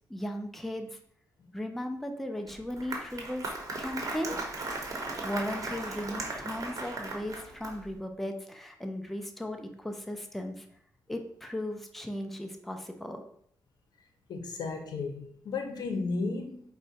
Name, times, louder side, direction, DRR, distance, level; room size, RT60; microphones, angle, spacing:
voice 1, 0.1-1.0 1.5-4.4 5.2-10.7 11.1-13.2, left 1 dB, 5° left, 4 dB, 0.4 m, -36 dB
Applause, 2.5-8.0, right 2 dB, 50° right, 0.9 m, -37 dB
voice 2, 14.3-16.7, left 3 dB, 75° left, 4 dB, 0.7 m, -34 dB
4.6 x 2.2 x 4.0 m, 0.66 s
cardioid pair, 95°, 7 cm